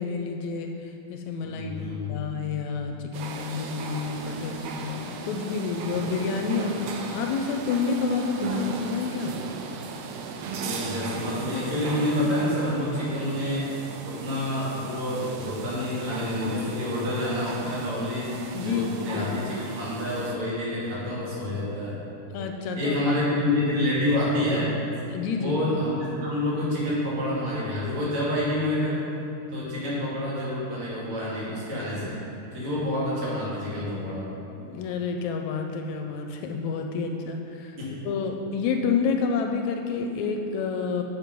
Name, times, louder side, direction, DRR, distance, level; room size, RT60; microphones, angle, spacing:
voice 1, 0.0-1.7 2.1-9.3 18.5-19.3 22.3-22.9 25.1-25.6 34.6-37.8 38.1-41.0, left 5 dB, 80° left, 4 dB, 1.8 m, -29 dB
voice 2, 1.4-2.3 10.5-22.3 22.7-24.7 25.4-29.0 29.5-32.2 32.5-34.3 37.8-38.1, left 1 dB, 65° right, -8 dB, 3.5 m, -28 dB
sound 1, 3.1-20.4, right 4 dB, 80° right, 1.4 m, -36 dB
7.6 x 7.6 x 5.2 m, 2.7 s
omnidirectional pair, 3.4 m